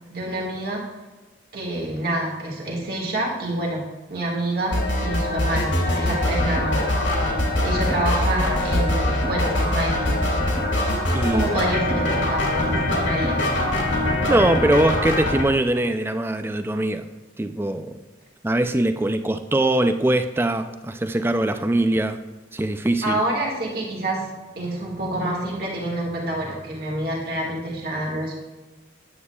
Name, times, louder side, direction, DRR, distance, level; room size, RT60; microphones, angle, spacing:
voice 1, 0.1-0.9 1.5-6.8 7.6-10.2 11.3-13.4 23.0-24.3 24.5-28.3, right 1 dB, 50° right, -2 dB, 1.8 m, -27 dB
sound 1, 4.7-15.4, left 1 dB, 75° left, 2.1 m, -23 dB
voice 2, 11.1-11.5 14.3-17.1 17.4-18.0 18.4-22.2 22.5-23.2, right 1 dB, 10° right, 8 dB, 0.3 m, -22 dB
9.5 x 8.2 x 2.3 m, 1.2 s
head